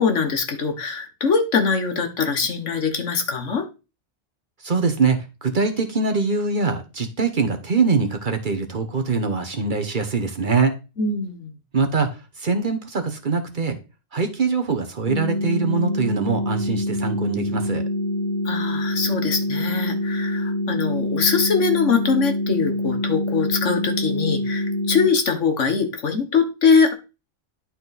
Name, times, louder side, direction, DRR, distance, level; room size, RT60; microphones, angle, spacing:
voice 1, 0.0-3.6 11.0-11.5 18.4-26.9, left 5 dB, 75° left, 6 dB, 1.6 m, -22 dB
voice 2, 4.6-10.8 11.7-13.8 14.1-17.8, right 4 dB, 45° right, 6 dB, 1.1 m, -23 dB
sound 1, 15.1-25.1, left 1 dB, 40° left, 2.7 m, -25 dB
11.0 x 4.3 x 4.1 m, 0.29 s
omnidirectional pair, 1.3 m